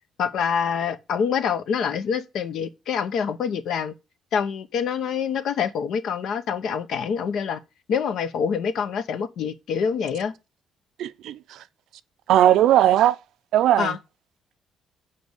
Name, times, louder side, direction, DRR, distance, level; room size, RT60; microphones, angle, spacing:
voice 1, 0.2-3.9 4.3-7.6 7.9-10.3 13.8-14.0, left 7 dB, 60° left, 0.9 m, -26 dB
voice 2, 11.0-11.6 12.3-13.2 13.5-14.0, right 12 dB, 80° right, 0.5 m, -18 dB
7.6 x 5.3 x 6.4 m
cardioid pair, 180°, 0 cm